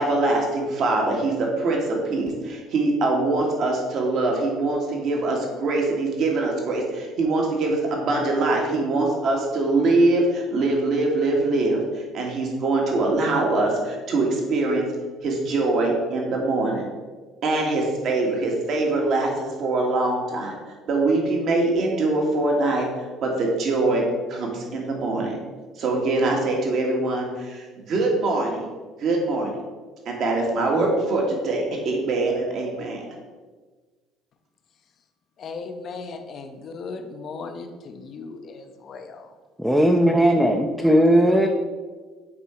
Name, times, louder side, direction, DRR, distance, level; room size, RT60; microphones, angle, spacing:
voice 1, 0.0-14.9 15.2-16.9 17.4-20.6 20.9-22.9 23.2-25.4 25.8-28.7 29.0-29.5 30.0-33.0, right 2 dB, 60° right, 0 dB, 1.7 m, -23 dB
voice 2, 35.4-39.3 40.8-41.0, left 4 dB, 50° left, 6 dB, 0.8 m, -37 dB
voice 3, 39.6-41.5, equal, 5° right, 2 dB, 0.6 m, -17 dB
8.6 x 3.5 x 4.4 m, 1.4 s
supercardioid pair, 75°, 0 cm